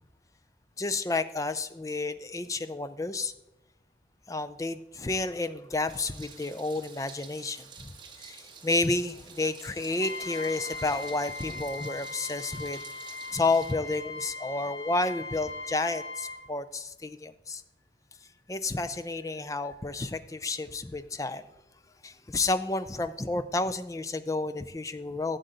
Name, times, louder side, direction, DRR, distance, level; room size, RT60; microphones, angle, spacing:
voice 1, 0.8-3.3 4.3-12.8 13.3-17.6 18.5-21.5 22.0-25.4, left 2 dB, 20° left, 12 dB, 0.4 m, -31 dB
Meow, 5.9-13.7, right 6 dB, 25° right, 1.2 m, -49 dB
Trumpet, 10.0-16.4, left 3 dB, 85° left, 1.4 m, -39 dB
11.5 x 8.0 x 3.8 m, 0.99 s
head